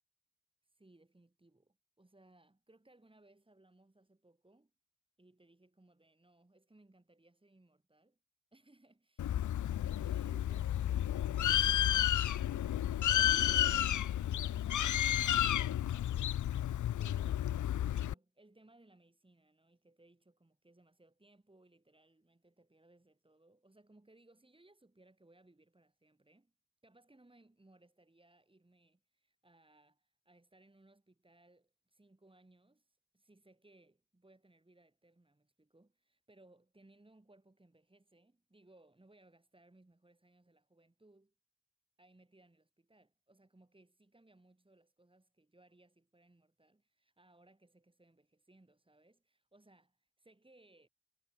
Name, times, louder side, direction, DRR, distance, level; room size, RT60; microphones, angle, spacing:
voice 1, 0.6-4.7 5.2-8.2 8.5-12.1 12.7-16.3 16.8-26.5 26.8-41.3 42.0-50.9, right 2 dB, 20° right, 7.1 m, -66 dB
Bird, 9.2-18.1, left 11 dB, 85° left, 0.5 m, -31 dB
wide cardioid pair, 100°, 29 cm